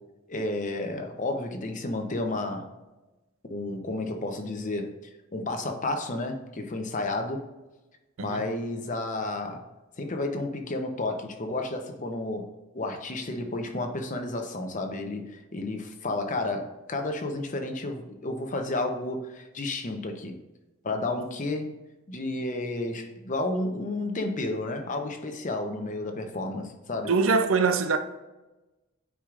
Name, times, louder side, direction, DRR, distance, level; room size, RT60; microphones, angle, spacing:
voice 1, 0.3-2.7 3.5-4.9 5.3-7.5 8.2-9.7 10.0-12.5 12.7-20.4 20.8-21.7 22.1-27.1, left 2 dB, 35° left, 0.8 m, -31 dB
voice 2, 27.1-28.0, right 4 dB, 65° right, 0.5 m, -23 dB
9.0 x 4.8 x 2.5 m
head